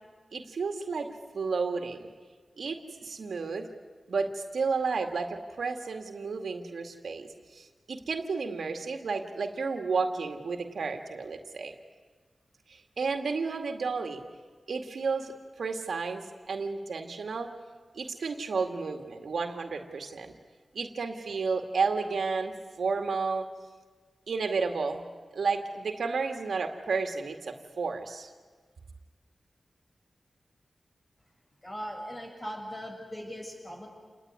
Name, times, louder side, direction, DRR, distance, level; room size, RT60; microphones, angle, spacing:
voice 1, 0.3-2.1 2.6-3.7 4.1-11.8 12.7-14.2 14.7-17.5 17.9-20.3 20.7-23.5 24.3-25.0 25.3-28.3, right 4 dB, 85° right, 5 dB, 2.2 m, -32 dB
voice 2, 31.6-33.9, equal, 30° left, 1 dB, 7.5 m, -39 dB
28.5 x 20.0 x 9.7 m, 1.4 s
wide cardioid pair, 80°, 0 cm